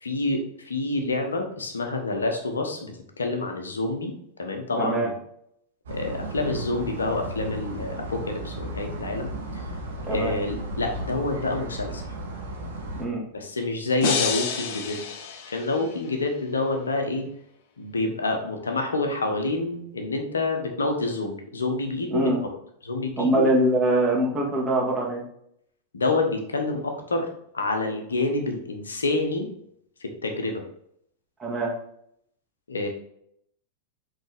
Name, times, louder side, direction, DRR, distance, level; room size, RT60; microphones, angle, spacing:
voice 1, 0.0-4.1 4.4-5.1 5.9-9.6 10.1-12.0 13.3-15.0 15.5-17.3 17.8-22.5 22.8-23.5 25.9-27.3 27.5-29.5 30.0-30.6 32.7-32.9, left 2 dB, 70° left, 4 dB, 1.2 m, -28 dB
voice 2, 4.8-5.1 10.1-10.3 13.0-13.2 22.1-22.4 23.2-25.2 31.4-31.7, right 1 dB, 15° right, -3 dB, 2.0 m, -23 dB
sound 1, 5.9-13.1, right 1 dB, 65° right, 1.5 m, -34 dB
sound 2, 14.0-16.1, left 6 dB, 50° left, 0.8 m, -29 dB
7.8 x 3.8 x 3.5 m, 0.71 s
figure-of-eight pair, 90°, 0 cm